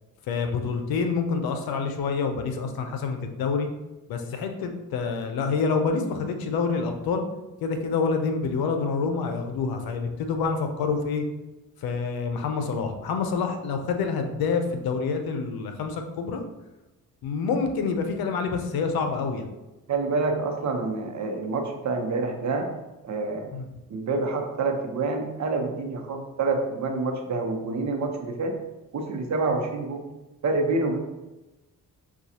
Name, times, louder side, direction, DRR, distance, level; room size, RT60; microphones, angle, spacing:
voice 1, 0.3-3.7 4.1-7.2 7.6-11.2 11.8-16.4 17.2-19.5 23.5-23.7, left 5 dB, 80° left, 5 dB, 0.7 m, -27 dB
voice 2, 19.9-22.7 23.0-23.5 23.9-28.5 28.9-30.0 30.4-31.0, right 3 dB, 50° right, 3 dB, 0.8 m, -27 dB
5.8 x 2.4 x 2.7 m, 1.0 s
cardioid pair, 70°, 36 cm